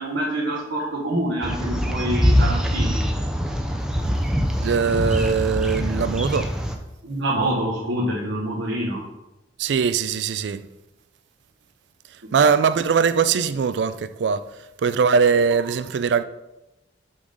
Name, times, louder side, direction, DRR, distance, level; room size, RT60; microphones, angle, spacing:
voice 1, 0.0-3.0 7.0-9.0 12.4-12.5 15.6-15.7, right 1 dB, 90° right, 1.2 m, -26 dB
sound 1, 1.4-6.7, equal, 5° right, 0.5 m, -23 dB
voice 2, 4.6-6.5 9.6-10.7 12.3-14.5 14.8-16.2, right 6 dB, 70° right, 0.4 m, -21 dB
6.1 x 3.8 x 5.0 m
head